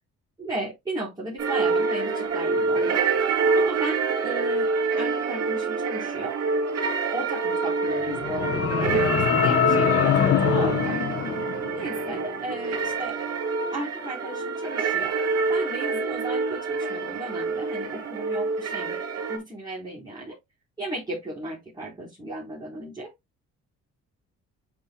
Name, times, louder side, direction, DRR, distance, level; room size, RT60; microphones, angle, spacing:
voice 1, 0.4-3.0 3.5-4.7 5.0-6.4 7.1-11.0 11.7-13.2 13.7-15.2 15.5-19.0 19.3-20.4 20.8-23.1, right 1 dB, 15° right, 4.6 m, -35 dB
sound 1, 1.4-19.4, right 4 dB, 55° right, 2.9 m, -26 dB
sound 2, 7.9-12.2, left 9 dB, 50° left, 1.1 m, -24 dB
10.5 x 5.5 x 2.3 m
cardioid pair, 90°, 30 cm